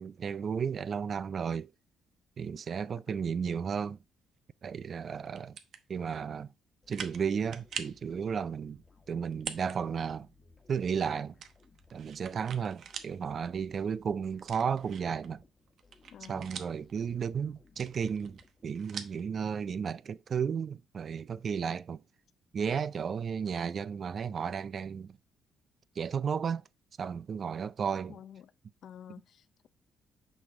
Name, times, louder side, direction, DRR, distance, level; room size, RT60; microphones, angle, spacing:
voice 1, 0.0-1.7 2.4-4.0 4.6-5.6 5.9-6.5 6.9-10.3 10.7-11.3 11.9-15.4 16.3-22.0 22.5-25.2 26.0-26.6 27.0-28.2, right 7 dB, 50° right, 0.4 m, -33 dB
sound 1, 5.3-5.8 6.4-6.5 6.9-7.2 7.5-8.0 9.3-9.8 10.1-10.2 11.4-13.1 13.5-13.6 14.4-15.3 15.7-16.9 17.7-19.2, right 7 dB, 65° right, 0.9 m, -43 dB
sound 2, 6.8-19.0, left 3 dB, 25° left, 1.3 m, -62 dB
voice 2, 16.1-16.5 28.1-28.5 28.8-29.7, left 9 dB, 65° left, 0.6 m, -50 dB
6.2 x 5.2 x 3.7 m
cardioid pair, 90°, 0 cm